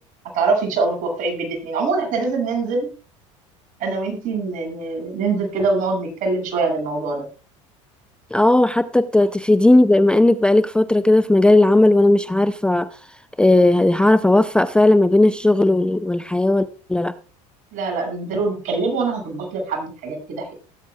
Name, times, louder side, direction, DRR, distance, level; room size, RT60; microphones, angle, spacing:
voice 1, 0.3-2.9 3.8-7.2 17.7-20.5, right 3 dB, 55° right, 2 dB, 7.2 m, -23 dB
voice 2, 8.3-12.9 13.4-17.1, left 2 dB, 5° left, 12 dB, 0.6 m, -16 dB
19.5 x 9.6 x 2.4 m, 0.35 s
supercardioid pair, 100°, 16 cm